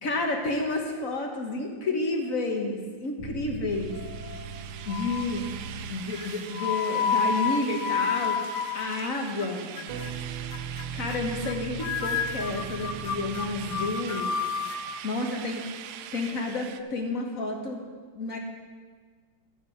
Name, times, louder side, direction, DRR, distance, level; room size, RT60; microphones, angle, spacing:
voice 1, 0.0-4.0 4.8-8.4 8.7-9.7 10.9-14.3 15.0-15.7 16.1-17.8 18.1-18.4, left 2 dB, 45° left, 2 dB, 1.5 m, -30 dB
sound 1, 3.2-6.3 9.9-14.5, right 6 dB, 70° right, 1.6 m, -39 dB
sound 2, 3.7-16.8, right 10 dB, 90° right, 1.4 m, -43 dB
sound 3, 3.9-4.5 4.9-5.4 6.2-9.5 9.8-10.1 10.5-10.8 11.1-11.5 11.8-14.8, left 7 dB, 65° left, 1.2 m, -30 dB
12.5 x 8.9 x 4.9 m, 1.5 s
omnidirectional pair, 2.2 m